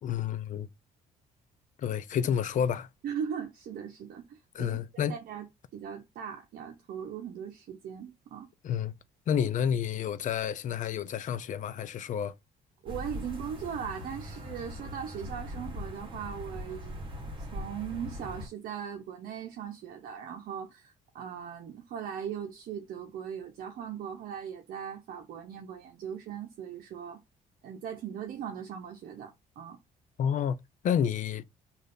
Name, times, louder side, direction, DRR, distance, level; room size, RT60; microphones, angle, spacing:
voice 1, 0.0-0.7 1.8-2.9 4.5-5.1 8.6-8.9 9.3-12.3 30.2-30.6 30.8-31.4, left 8 dB, 55° left, 0.5 m, -29 dB
voice 2, 3.0-8.5 12.8-27.2 27.6-29.8, right 8 dB, 65° right, 0.8 m, -39 dB
sound 1, 12.9-18.5, left 1 dB, 30° right, 1.4 m, -41 dB
3.2 x 2.5 x 3.8 m
cardioid pair, 100°, 16 cm